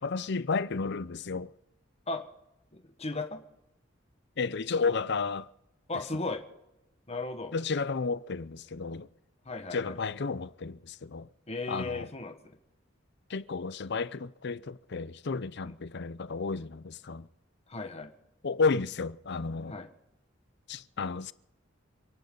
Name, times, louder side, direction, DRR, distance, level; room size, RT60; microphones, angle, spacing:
voice 1, 0.0-1.5 4.4-5.5 7.5-9.1 9.7-11.3 11.7-12.1 13.3-17.3 18.4-19.7 20.7-21.3, left 4 dB, 60° left, 0.6 m, -32 dB
voice 2, 2.7-3.4 5.9-6.4 7.1-7.5 9.4-10.0 11.5-12.4 15.6-15.7 17.7-18.1 19.7-19.9, left 3 dB, 35° left, 1.5 m, -36 dB
29.0 x 11.0 x 3.9 m
head